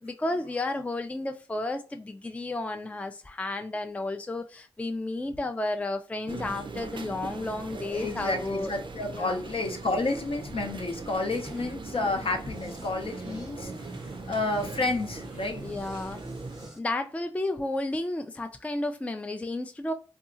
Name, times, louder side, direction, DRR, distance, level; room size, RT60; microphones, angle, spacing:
voice 1, 0.0-8.7 9.1-9.4 15.6-16.2 16.8-19.9, left 2 dB, 15° left, 0.3 m, -32 dB
sound 1, 6.3-16.7, right 3 dB, 50° right, 0.4 m, -40 dB
voice 2, 7.7-13.9 14.3-15.6, left 2 dB, 65° left, 0.6 m, -30 dB
sound 2, 11.3-16.8, right 1 dB, 5° right, 0.7 m, -45 dB
2.7 x 2.3 x 2.4 m
cardioid pair, 45°, 10 cm